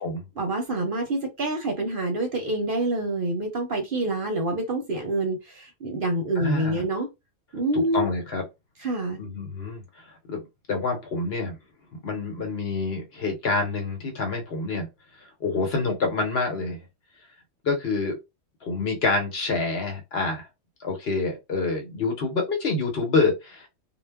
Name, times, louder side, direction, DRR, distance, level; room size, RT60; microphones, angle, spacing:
voice 1, 0.4-7.1 7.5-8.1 8.8-9.2, right 2 dB, 55° right, 0.7 m, -27 dB
voice 2, 6.4-6.8 7.7-8.4 9.2-9.8 10.3-10.4 10.7-11.6 11.9-14.9 15.4-16.8 17.6-18.2 18.6-20.5 20.8-23.7, left 3 dB, 55° left, 1.0 m, -27 dB
2.3 x 2.0 x 3.4 m
omnidirectional pair, 1.3 m